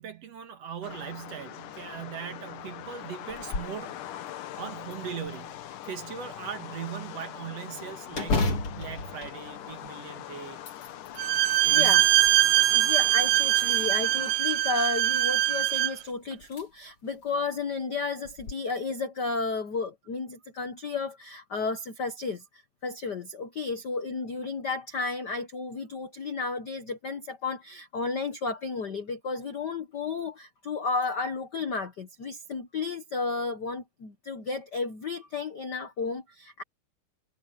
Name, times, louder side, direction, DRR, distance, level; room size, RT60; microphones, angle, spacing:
voice 1, 0.0-4.0 4.6-5.6 5.9-10.6 11.6-12.1, right 8 dB, 55° right, 2.5 m, -39 dB
sound 1, 0.8-14.3, left 12 dB, 75° left, 2.7 m, -43 dB
sound 2, 3.3-3.8 4.3-4.4 4.9-5.7 8.1-10.1 10.5-11.3 11.9-12.7 13.6-14.3 15.8-15.9 16.4-16.6 17.1-17.2 18.3-18.5, left 3 dB, 45° left, 4.1 m, -33 dB
Bowed string instrument, 11.2-16.0, right 15 dB, 75° right, 2.5 m, -22 dB
voice 2, 11.7-12.0 12.7-22.4 22.8-36.6, left 4 dB, 60° left, 1.1 m, -33 dB
omnidirectional pair, 3.7 m